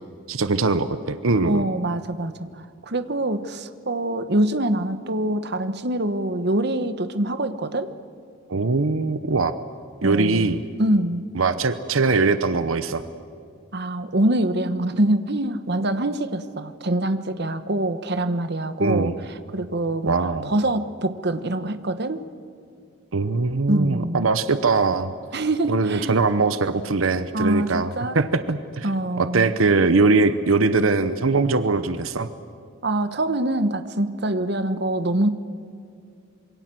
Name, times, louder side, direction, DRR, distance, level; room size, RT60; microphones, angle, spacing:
voice 1, 0.3-1.7 8.5-9.5 10.0-10.6 11.3-13.0 18.8-19.1 20.1-20.5 23.1-25.1 25.7-28.9 29.2-32.3, right 3 dB, 85° right, 11 dB, 0.9 m, -21 dB
voice 2, 1.4-7.9 10.0-11.3 13.7-20.1 20.4-22.2 23.7-24.3 25.3-26.2 27.3-28.2 28.8-29.5 32.8-35.3, right 1 dB, 55° right, 10 dB, 1.2 m, -24 dB
26.5 x 23.0 x 7.7 m, 2.4 s
head